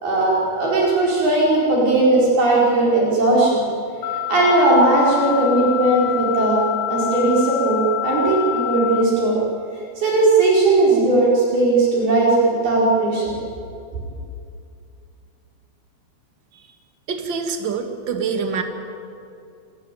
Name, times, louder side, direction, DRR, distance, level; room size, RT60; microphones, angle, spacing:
voice 1, 0.0-3.7 4.0-6.6 6.9-9.4 10.0-13.2, right 2 dB, 60° right, -5 dB, 6.7 m, -17 dB
sound 1, 4.0-9.0, left 13 dB, 65° left, 3.1 m, -26 dB
voice 2, 17.1-18.6, right 5 dB, 40° right, 5 dB, 1.9 m, -25 dB
28.0 x 21.5 x 9.2 m, 2.5 s
omnidirectional pair, 5.1 m